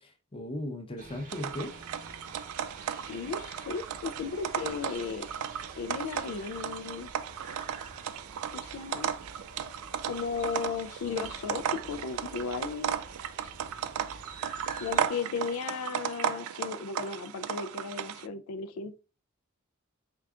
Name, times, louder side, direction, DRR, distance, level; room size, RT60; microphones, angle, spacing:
voice 1, 0.0-1.7, left 1 dB, 25° left, 0.6 m, -37 dB
sound 1, 1.0-15.1, right 2 dB, 40° right, 0.7 m, -49 dB
sound 2, 1.3-18.3, right 9 dB, 80° right, 0.3 m, -35 dB
voice 2, 3.1-5.3 5.8-7.1 8.5-9.1 10.0-13.0 14.8-19.0, left 5 dB, 85° left, 0.4 m, -35 dB
4.5 x 3.6 x 2.4 m
head